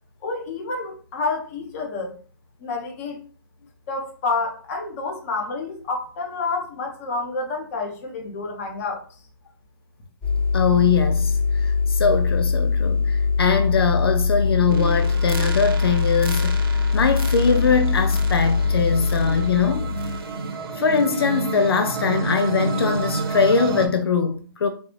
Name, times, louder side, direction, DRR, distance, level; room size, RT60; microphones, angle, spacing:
voice 1, 0.2-2.1 2.6-3.2 3.9-9.0, left 3 dB, 35° left, 1.0 m, -29 dB
sound 1, 10.2-20.2, left 4 dB, 10° left, 0.5 m, -22 dB
voice 2, 10.5-16.6 16.9-19.9 20.7-24.7, left 5 dB, 85° left, 0.5 m, -22 dB
sound 2, 14.7-23.9, right 4 dB, 75° right, 0.8 m, -30 dB
3.8 x 2.4 x 3.1 m
hypercardioid pair, 150°, 12 cm